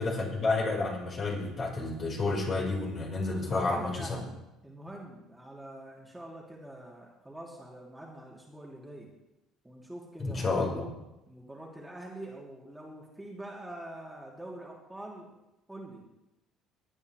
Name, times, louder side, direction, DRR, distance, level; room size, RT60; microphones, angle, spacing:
voice 1, 0.0-4.2 10.2-10.9, left 3 dB, 40° left, -2 dB, 5.3 m, -30 dB
voice 2, 3.4-4.3 4.6-9.1 9.6-10.6 11.3-15.3 15.7-16.1, right 1 dB, 10° right, -3 dB, 3.2 m, -45 dB
19.5 x 9.7 x 3.5 m, 0.93 s
hypercardioid pair, 55°, 0 cm